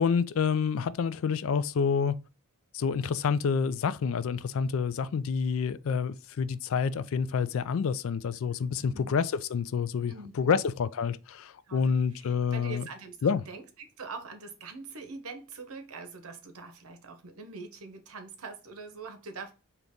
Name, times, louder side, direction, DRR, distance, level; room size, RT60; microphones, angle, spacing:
voice 1, 0.0-2.2 2.7-12.8 13.2-13.4, left 6 dB, 65° left, 0.3 m, -28 dB
voice 2, 8.6-9.2 10.0-10.7 11.7-19.5, right 4 dB, 75° right, 0.8 m, -44 dB
3.9 x 2.9 x 3.4 m
head